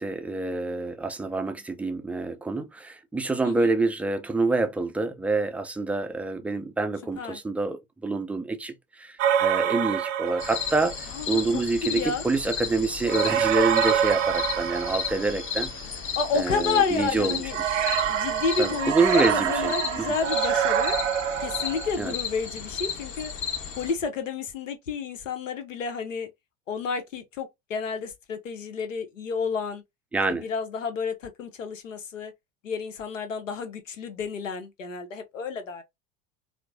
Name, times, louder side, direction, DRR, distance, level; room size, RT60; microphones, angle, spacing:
voice 1, 0.0-15.7 16.4-17.4 18.6-20.2 22.0-22.1 30.1-30.4, right 3 dB, 5° right, 0.3 m, -27 dB
sound 1, 9.2-10.9 13.0-15.6 17.5-21.9, right 9 dB, 75° right, 0.6 m, -26 dB
sound 2, 10.4-23.9, left 6 dB, 30° left, 1.2 m, -34 dB
voice 2, 11.1-12.2 16.1-17.6 18.1-20.9 21.4-23.3 23.8-26.3 26.7-29.8 30.3-32.3 32.6-35.8, left 5 dB, 80° left, 0.9 m, -30 dB
4.4 x 2.1 x 2.5 m
figure-of-eight pair, 75°, 38 cm